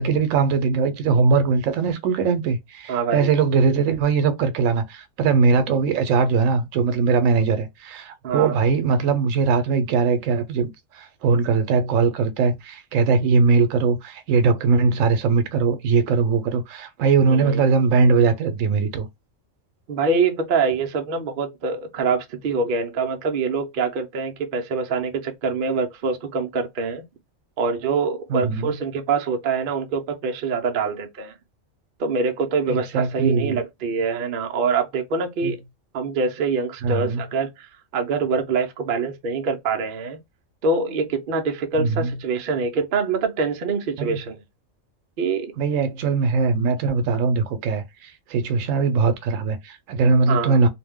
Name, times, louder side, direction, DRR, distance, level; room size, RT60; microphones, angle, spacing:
voice 1, 0.0-10.7 10.9-19.1 28.3-28.7 32.7-33.6 35.4-35.5 36.8-37.2 41.8-42.1 44.0-44.2 45.6-50.7, right 5 dB, 75° right, 1.0 m, -20 dB
voice 2, 2.9-3.3 8.2-8.6 17.3-17.6 19.9-27.0 27.6-31.3 32.0-35.6 35.9-40.2 40.6-44.4 45.2-45.5 50.3-50.6, right 4 dB, 60° right, 0.6 m, -25 dB
2.6 x 2.1 x 3.4 m
omnidirectional pair, 1.4 m